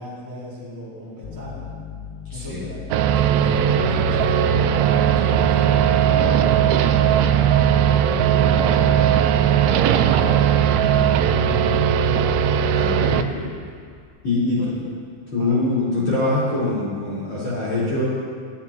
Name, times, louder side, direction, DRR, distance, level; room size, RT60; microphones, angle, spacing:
voice 1, 0.0-1.9 2.3-4.4 4.9-12.1 12.5-13.1 14.4-14.7 15.4-15.6, left 1 dB, 5° right, -9 dB, 3.9 m, -37 dB
sound 1, 1.2-14.4, left 8 dB, 85° left, 3.5 m, -38 dB
voice 2, 2.3-2.6 12.7-13.5 14.2-14.7 15.3-18.1, left 2 dB, 35° left, -9 dB, 5.3 m, -23 dB
sound 2, 2.9-13.2, right 9 dB, 80° right, 2.8 m, -18 dB
19.5 x 19.5 x 3.1 m, 2.1 s
omnidirectional pair, 5.9 m